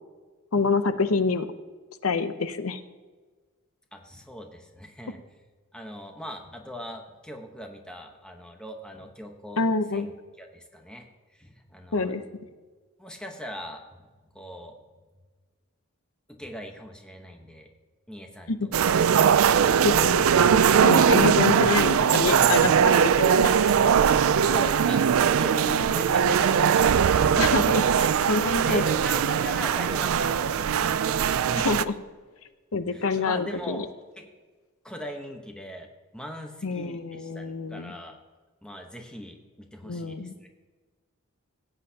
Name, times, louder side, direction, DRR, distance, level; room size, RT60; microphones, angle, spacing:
voice 1, 0.5-1.5 2.0-2.8 9.6-10.1 11.9-12.2 18.5-18.6 19.8-20.3 20.8-23.5 27.4-28.8 31.5-31.9 32.7-33.8 36.6-37.9 39.9-40.3, left 4 dB, 70° left, 11 dB, 0.7 m, -26 dB
voice 2, 3.9-5.2 5.7-9.7 9.9-10.1 10.4-12.1 13.0-14.0 14.3-14.8 16.3-17.7 18.1-18.5 18.9-19.0 21.1-21.9 23.6-27.4 28.2-31.3 32.9-33.9 34.2-34.3 34.8-35.9 36.1-38.2 38.6-40.5, equal, 5° left, 3 dB, 1.0 m, -40 dB
sound 1, 18.7-31.8, right 7 dB, 65° right, 0.4 m, -21 dB
16.5 x 8.2 x 2.8 m, 1.4 s
head